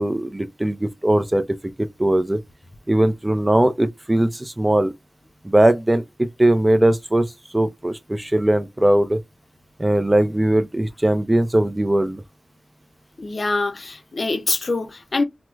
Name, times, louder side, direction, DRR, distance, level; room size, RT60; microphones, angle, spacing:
voice 1, 0.0-2.4 2.9-4.9 5.4-7.3 7.5-9.2 9.8-12.2, right 1 dB, 20° right, 0.4 m, -19 dB
voice 2, 13.2-15.2, left 3 dB, 55° left, 0.5 m, -24 dB
4.5 x 2.0 x 2.3 m
wide cardioid pair, 75°, 0 cm